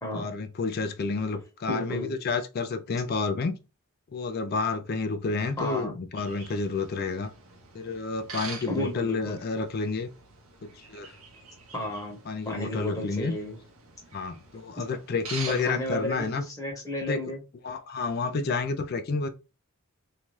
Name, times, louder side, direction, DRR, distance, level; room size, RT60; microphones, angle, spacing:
voice 1, 0.1-3.6 4.1-7.3 7.7-10.1 10.6-11.1 12.3-13.4 14.1-16.5 17.0-17.2 17.6-19.3, left 4 dB, 45° left, 0.4 m, -30 dB
voice 2, 1.7-2.2 5.6-5.9 8.7-9.4 11.7-12.2 12.5-13.6 15.5-17.4 18.3-18.4, left 1 dB, 15° left, 1.0 m, -33 dB
sound 1, 6.2-16.5, right 4 dB, 75° right, 0.7 m, -45 dB
2.7 x 2.3 x 3.1 m
head